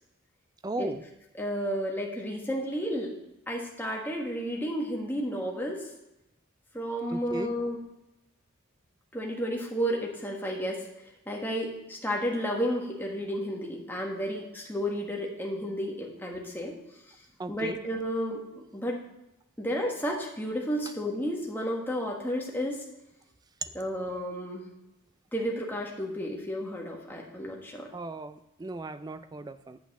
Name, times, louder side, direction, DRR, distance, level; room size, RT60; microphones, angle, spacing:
voice 1, 0.6-1.0 7.1-7.5 17.4-17.8 23.6-23.7 27.9-29.8, right 2 dB, 20° right, 12 dB, 0.3 m, -36 dB
voice 2, 1.4-3.1 3.5-5.9 6.7-7.8 9.1-10.8 11.3-16.7 17.5-18.4 18.7-19.0 19.6-22.8 23.7-24.6 25.3-27.9, equal, 10° left, -1 dB, 1.5 m, -32 dB
8.2 x 8.1 x 4.1 m, 0.92 s
head